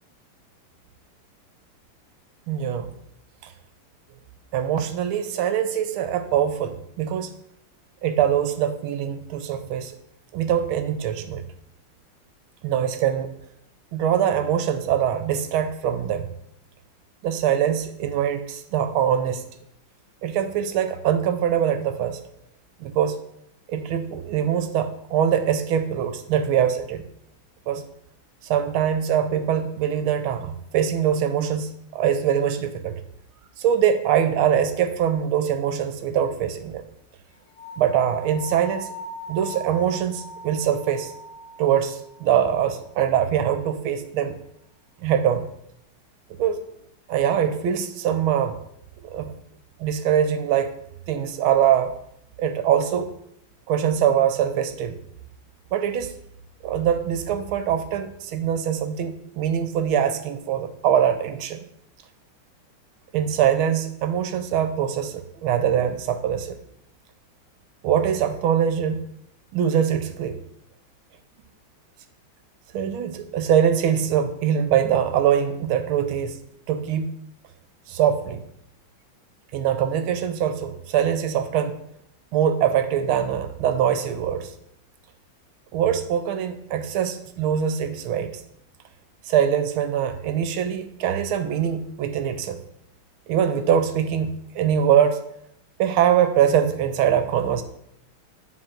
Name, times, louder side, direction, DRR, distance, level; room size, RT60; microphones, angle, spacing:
voice 1, 2.5-2.9 3.4-3.5 4.5-7.3 8.0-10.0 10.3-11.4 12.6-13.3 13.9-16.3 17.2-19.4 20.2-22.2 22.8-23.2 23.7-27.0 27.7-27.8 28.4-33.0 33.6-36.8 37.8-38.9 39.3-41.1 41.6-44.4 45.0-45.4 46.4-46.6 47.1-48.6 49.0-49.3 49.8-50.7 51.1-52.0 52.4-53.1 53.7-55.0 55.7-56.1 56.6-61.6 63.1-66.6 67.8-69.0 69.5-70.4 72.7-76.4 76.7-77.2 77.9-78.4 79.5-81.8 82.3-84.5 85.7-88.4 89.2-92.6 93.3-95.2 95.8-97.6, right 9 dB, 75° right, 9 dB, 1.4 m, -23 dB
sound 1, 37.6-42.7, equal, 50° left, 2.4 m, -40 dB
9.0 x 4.0 x 4.3 m, 0.74 s
omnidirectional pair, 2.4 m